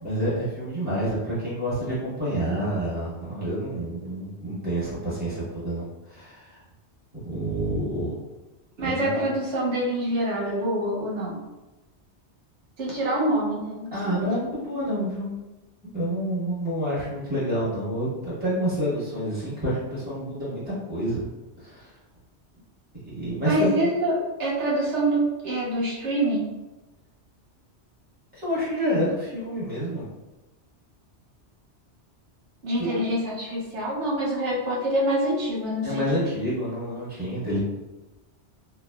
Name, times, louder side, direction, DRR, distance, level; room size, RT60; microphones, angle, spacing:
voice 1, 0.0-6.6 7.2-8.1 8.8-9.2 13.9-15.3 15.9-21.2 21.6-21.9 23.1-23.7 28.3-30.0 32.8-33.0 35.8-37.6, equal, 10° right, -11 dB, 1.2 m, -28 dB
voice 2, 8.8-11.4 12.8-14.2 23.4-26.5 32.6-36.0, right 1 dB, 85° right, -5 dB, 1.1 m, -26 dB
3.1 x 2.0 x 2.2 m, 1.1 s
omnidirectional pair, 1.2 m